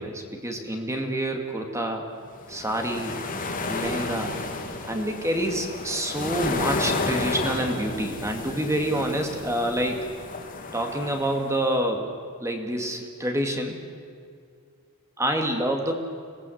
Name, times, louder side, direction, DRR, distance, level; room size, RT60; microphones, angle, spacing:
voice 1, 0.0-2.1 2.5-3.2 3.7-4.3 4.8-10.1 10.7-12.1 12.4-13.8 15.2-16.0, right 1 dB, 15° right, 3 dB, 2.2 m, -27 dB
sound 1, 2.4-11.6, left 3 dB, 40° left, 2.2 m, -32 dB
26.5 x 18.5 x 7.9 m, 2.3 s
head